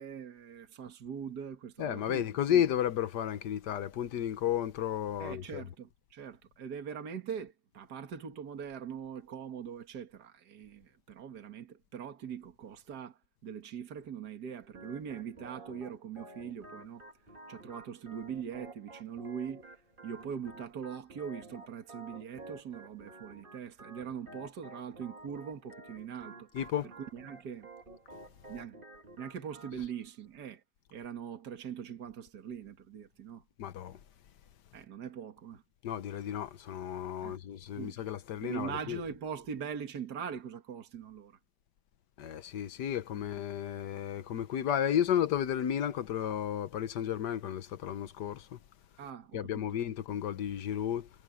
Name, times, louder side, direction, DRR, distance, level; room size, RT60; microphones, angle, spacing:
voice 1, 0.0-2.6 5.2-17.0 17.5-19.7 20.0-26.5 27.0-27.7 28.5-28.8 29.2-30.6 30.9-33.4 34.7-35.6 37.2-37.4 37.8-38.0 38.4-41.4 49.0-49.7, right 7 dB, 60° right, 2.2 m, -42 dB
voice 2, 1.8-5.6 26.5-26.9 33.6-34.0 35.8-39.0 42.2-48.6 49.3-51.1, left 10 dB, 70° left, 1.4 m, -33 dB
Organ, 14.7-29.8, right 2 dB, 30° right, 1.9 m, -51 dB
omnidirectional pair, 2.0 m